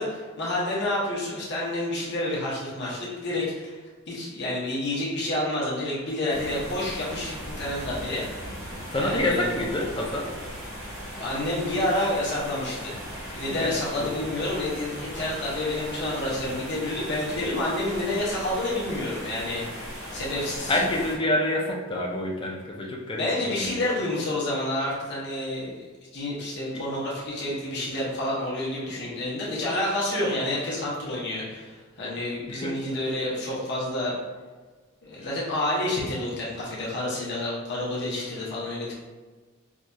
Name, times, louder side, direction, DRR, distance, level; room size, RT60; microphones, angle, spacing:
voice 1, 0.0-8.2 9.0-9.5 11.2-13.0 13.3-19.6 20.1-20.7 23.2-25.8 26.1-34.2 35.0-38.9, left 1 dB, 50° left, -6 dB, 0.8 m, -29 dB
sound 1, 6.3-21.2, equal, 60° right, 1.3 m, -38 dB
voice 2, 8.9-10.3 13.5-14.1 20.7-24.0 26.7-26.8 32.5-32.8 35.2-35.3, left 1 dB, 20° left, -1 dB, 0.4 m, -28 dB
4.6 x 2.7 x 2.3 m, 1.4 s
head